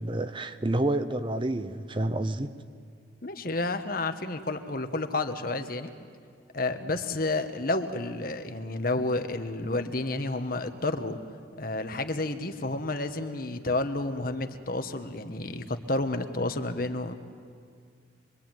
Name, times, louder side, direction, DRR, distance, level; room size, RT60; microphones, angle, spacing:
voice 1, 0.0-2.5, right 1 dB, 25° right, 11 dB, 0.8 m, -29 dB
voice 2, 3.2-5.9 6.5-11.2 11.6-17.2, left 2 dB, 50° left, 8 dB, 1.4 m, -30 dB
26.0 x 23.5 x 9.2 m, 2.2 s
head